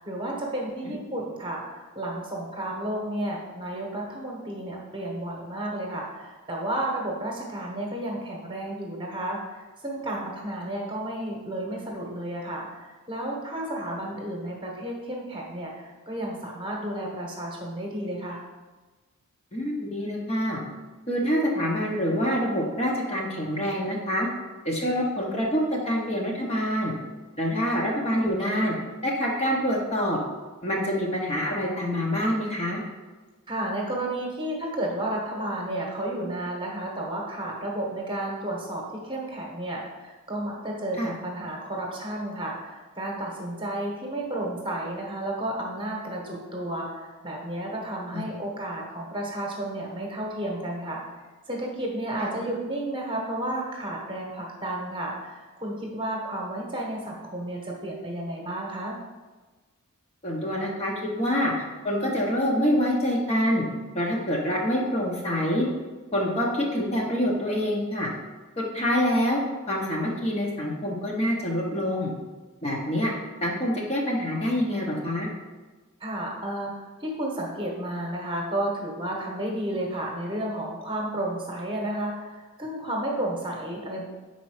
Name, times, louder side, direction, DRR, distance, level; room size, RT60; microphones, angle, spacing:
voice 1, 0.0-18.4 33.5-51.0 51.5-59.0 76.0-76.7 77.0-84.0, right 1 dB, 25° right, -1 dB, 1.1 m, -32 dB
voice 2, 19.5-20.6 21.1-24.3 24.6-26.9 27.4-28.7 29.0-30.2 30.6-32.8 41.0-41.1 48.1-48.2 52.2-52.3 60.2-61.5 61.8-63.6 63.9-65.7 66.1-68.1 68.6-69.4 69.7-72.1 72.6-73.1 73.4-75.3, equal, 30° left, -2 dB, 0.9 m, -26 dB
5.2 x 4.2 x 4.9 m, 1.3 s
head